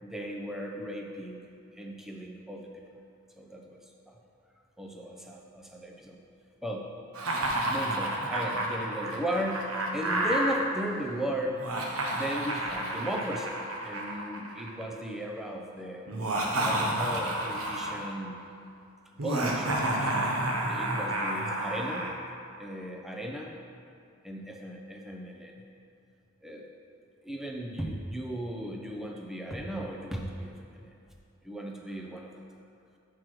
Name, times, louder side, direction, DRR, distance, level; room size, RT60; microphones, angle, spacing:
voice 1, 0.0-1.5 1.7-2.8 3.4-3.8 4.1-4.2 4.8-6.2 6.6-6.9 7.7-11.7 12.1-13.5 13.8-16.1 16.6-18.4 19.2-20.1 20.6-22.1 22.6-23.5 24.2-25.5 26.4-26.7 27.2-30.9 31.4-32.3, equal, ahead, 0 dB, 0.5 m, -36 dB
Laughter, 7.1-10.6 11.5-14.8 16.1-18.1 19.2-22.1, right 1 dB, 90° right, 0.9 m, -30 dB
6.2 x 4.7 x 6.0 m, 2.6 s
head